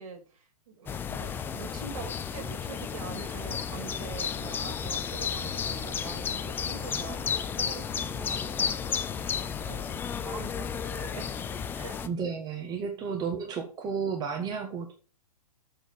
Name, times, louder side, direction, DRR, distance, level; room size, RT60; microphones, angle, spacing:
voice 1, 0.0-11.3 11.7-12.0 12.9-13.1, right 5 dB, 60° right, 6 dB, 3.0 m, -44 dB
sound 1, 0.9-12.1, left 7 dB, 10° left, 0.5 m, -33 dB
voice 2, 12.0-14.9, right 6 dB, 20° right, 3 dB, 1.3 m, -32 dB
6.9 x 5.9 x 7.0 m, 0.38 s
hypercardioid pair, 130°, 20 cm